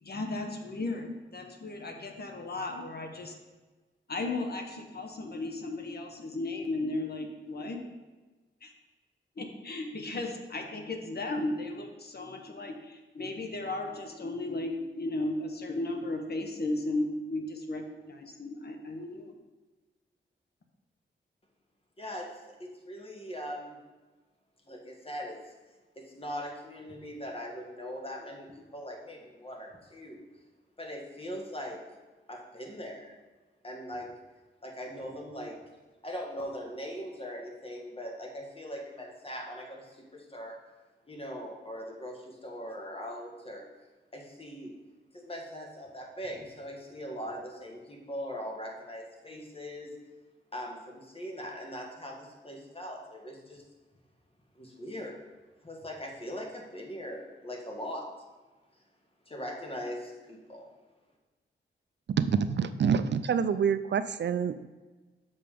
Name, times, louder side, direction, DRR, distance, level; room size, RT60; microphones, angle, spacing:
voice 1, 0.0-3.3 4.1-7.8 8.6-8.7 9.4-19.3, left 2 dB, 55° left, 3 dB, 1.0 m, -35 dB
voice 2, 22.0-23.8 24.6-25.5 25.9-30.2 30.8-31.8 32.3-33.2 33.6-34.1 34.6-35.6 36.0-40.6 41.0-43.6 44.1-44.7 45.1-49.9 50.5-53.6 54.5-55.1 55.6-58.1 59.2-60.7, equal, 30° left, 0 dB, 1.6 m, -40 dB
voice 3, 62.2-64.7, right 7 dB, 65° right, 12 dB, 0.4 m, -27 dB
6.8 x 5.5 x 5.0 m, 1.3 s
wide cardioid pair, 90°, 20 cm